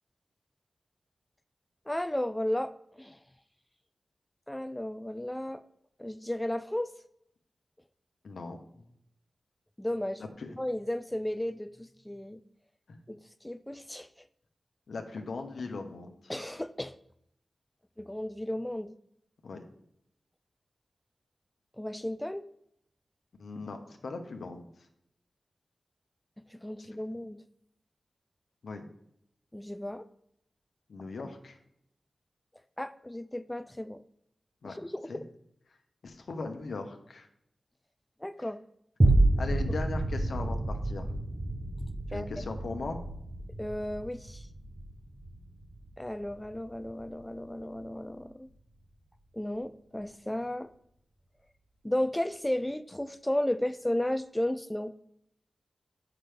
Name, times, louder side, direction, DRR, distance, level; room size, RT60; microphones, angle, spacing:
voice 1, 1.9-2.7 3.0-3.2 4.5-5.6 6.0-6.9 9.8-10.2 10.6-12.4 13.1-14.1 16.3-17.0 18.0-18.9 21.8-22.5 26.5-27.4 29.5-30.1 32.8-34.0 34.6-35.2 38.2-38.6 42.1-42.3 43.6-44.5 46.0-48.5 49.3-50.7 51.8-54.9, left 1 dB, 10° left, 11 dB, 0.4 m, -34 dB
voice 2, 8.2-8.6 10.4-10.6 12.9-13.0 14.9-16.1 19.4-19.6 23.4-24.6 28.6-28.8 30.9-31.6 34.6-34.8 35.1-35.2 36.0-37.3 39.4-41.1 42.1-43.0, left 3 dB, 80° left, 5 dB, 0.9 m, -38 dB
sound 1, 39.0-47.6 48.0-48.1, right 2 dB, 40° right, 0.7 m, -30 dB
7.6 x 5.9 x 3.4 m, 0.75 s
cardioid pair, 50°, 0 cm